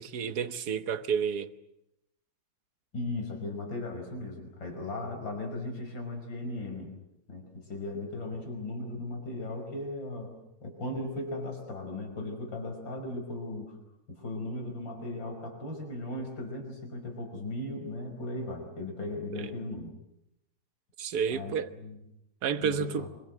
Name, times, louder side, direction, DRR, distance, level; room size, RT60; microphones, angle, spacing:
voice 1, 0.0-1.5 19.3-19.5 21.0-21.7 22.4-23.1, right 7 dB, 55° right, 1.7 m, -30 dB
voice 2, 2.9-6.9 7.3-10.3 10.6-13.8 14.1-19.9 21.3-22.0 22.6-23.1, left 2 dB, 70° left, 6.2 m, -37 dB
26.0 x 25.0 x 7.8 m
omnidirectional pair, 2.1 m